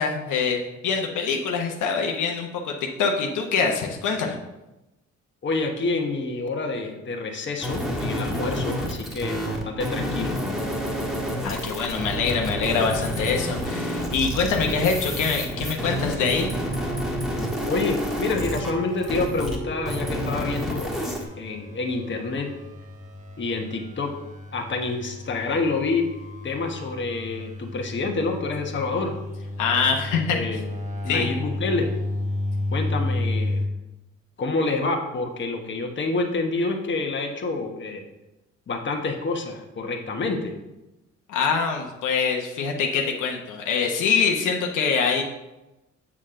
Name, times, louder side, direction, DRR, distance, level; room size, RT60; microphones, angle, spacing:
voice 1, 0.0-4.4 11.4-16.5 29.6-30.6 31.1-31.3 41.3-45.2, left 5 dB, 80° left, 2 dB, 1.1 m, -24 dB
voice 2, 5.4-10.4 17.7-21.0 21.4-22.5 23.4-24.1 24.5-26.0 26.4-29.2 30.3-30.7 31.0-31.9 32.7-33.6 34.4-38.0 38.7-40.5, left 3 dB, 40° left, 2 dB, 1.2 m, -28 dB
sound 1, 7.6-19.6 19.8-21.2, equal, ahead, 1.6 m, -29 dB
sound 2, 16.1-33.7, left 1 dB, 25° right, 1.2 m, -33 dB
7.4 x 6.7 x 3.7 m, 0.99 s
cardioid pair, 90°, 30 cm